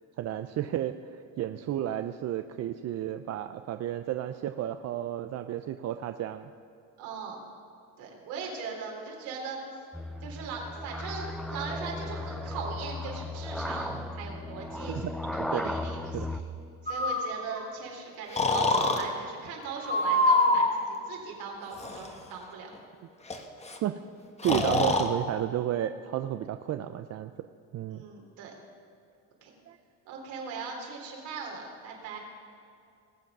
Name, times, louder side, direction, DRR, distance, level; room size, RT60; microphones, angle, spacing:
voice 1, 0.2-6.5 13.9-14.0 14.9-15.0 15.5-15.7 16.1-16.3 23.8-24.0 24.4-27.3 27.7-28.0 29.7-29.8, right 11 dB, 45° right, 9 dB, 0.6 m, -32 dB
voice 2, 7.0-7.4 8.0-9.8 10.2-15.0 15.3-16.4 16.8-22.8 27.9-28.5 29.4-29.5 30.1-32.2, right 5 dB, 75° right, 0 dB, 3.5 m, -39 dB
sound 1, 9.9-16.4, left 1 dB, ahead, 0.6 m, -36 dB
Breathing, 16.9-17.6 18.4-19.0 19.9-20.8 21.7-22.1 23.3-23.4 23.6-23.8 24.4-25.1, left 2 dB, 20° left, 1.3 m, -25 dB
20.0 x 7.5 x 6.0 m, 2.5 s
supercardioid pair, 105°, 36 cm